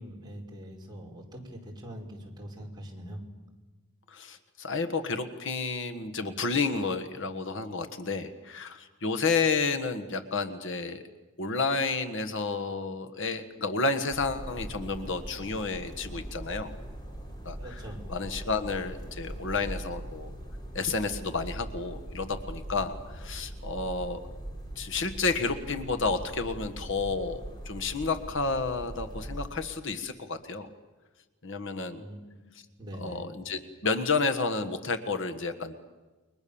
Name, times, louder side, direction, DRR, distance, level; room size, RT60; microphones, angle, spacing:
voice 1, 0.0-3.2 17.6-18.0 32.0-32.4 32.8-33.2, equal, 20° right, -1 dB, 5.0 m, -43 dB
voice 2, 4.1-11.0 11.4-16.7 17.4-20.3 20.7-24.2 24.7-30.7 31.4-32.0 33.0-35.7, left 4 dB, 55° left, 7 dB, 1.6 m, -31 dB
sound 1, 14.1-29.5, right 1 dB, 20° left, 4.4 m, -41 dB
29.5 x 23.0 x 7.1 m, 1.2 s
head